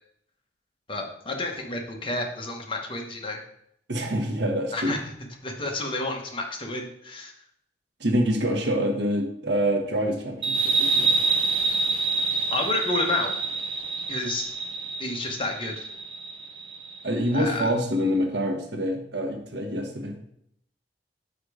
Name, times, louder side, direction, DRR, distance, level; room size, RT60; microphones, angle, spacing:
voice 1, 0.9-3.4 4.7-5.0 5.4-7.3 12.5-13.3 14.1-14.5 15.0-15.9 17.3-17.7, left 2 dB, 30° left, 2 dB, 1.0 m, -30 dB
voice 2, 3.9-5.0 8.0-11.1 17.0-20.2, equal, 70° right, 4 dB, 1.0 m, -26 dB
sound 1, 10.4-17.6, right 3 dB, 30° right, 0.5 m, -27 dB
5.2 x 5.2 x 4.8 m, 0.72 s
head